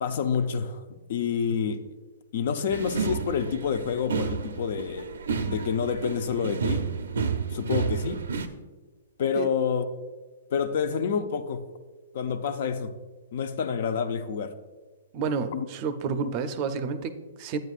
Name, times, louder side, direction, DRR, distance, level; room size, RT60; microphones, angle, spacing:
voice 1, 0.0-0.8 1.1-1.9 2.3-5.1 5.5-6.9 7.5-8.2 9.2-9.8 10.5-11.6 12.1-12.9 13.3-14.5 15.5-15.6, left 6 dB, 55° left, 10 dB, 0.6 m, -28 dB
sound 1, 2.7-8.5, right 5 dB, 85° right, 0.6 m, -31 dB
voice 2, 15.1-17.6, right 5 dB, 35° right, 10 dB, 0.5 m, -30 dB
9.4 x 8.9 x 2.5 m, 1.3 s
hypercardioid pair, 150°, 0 cm